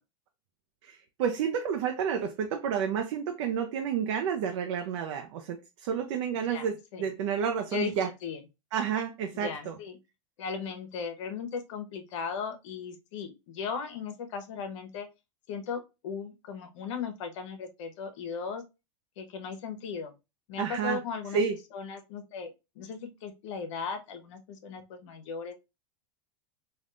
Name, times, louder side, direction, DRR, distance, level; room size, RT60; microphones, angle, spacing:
voice 1, 0.8-8.1 8.7-9.8 20.6-21.0 21.3-21.6, right 7 dB, 65° right, 0.5 m, -30 dB
voice 2, 6.4-7.1 7.7-7.9 8.2-8.4 9.3-10.0 10.4-15.1 15.5-18.6 19.2-20.1 20.5-21.4 21.7-22.5 22.8-25.6, left 6 dB, 65° left, 0.8 m, -37 dB
3.4 x 2.3 x 2.5 m
supercardioid pair, 130°, 16 cm